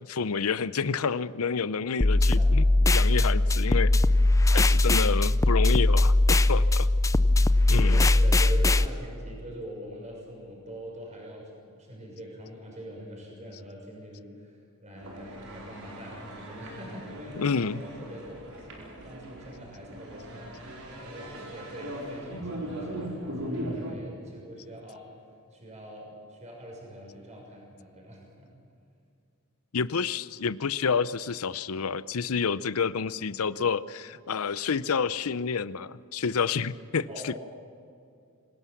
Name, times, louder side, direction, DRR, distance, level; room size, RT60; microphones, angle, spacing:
voice 1, 0.1-3.9 4.5-6.9 7.7-8.1 17.3-17.8 29.7-37.4, left 5 dB, 75° left, 16 dB, 0.6 m, -29 dB
sound 1, 2.0-8.9, left 2 dB, 15° left, 0.4 m, -20 dB
voice 2, 7.8-18.4 18.7-25.1 25.5-28.5 37.1-37.4, equal, 35° right, -1 dB, 6.4 m, -43 dB
sound 2, 15.0-23.9, right 1 dB, 75° right, 4.9 m, -39 dB
26.0 x 17.0 x 7.2 m, 2.4 s
head